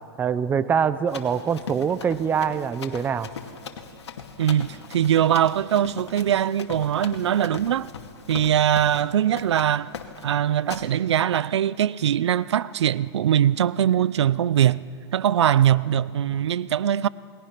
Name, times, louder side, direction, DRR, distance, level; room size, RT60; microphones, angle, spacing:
voice 1, 0.2-3.3, right 7 dB, 15° right, 0.6 m, -24 dB
Run, 1.1-9.1 9.4-9.7 9.9-10.3 10.7-10.9, left 7 dB, 90° left, 2.3 m, -39 dB
voice 2, 4.4-7.9 8.3-9.9 10.2-14.8 15.1-17.1, right 10 dB, 90° right, 0.5 m, -21 dB
29.0 x 20.5 x 5.9 m
hypercardioid pair, 145°, 14 cm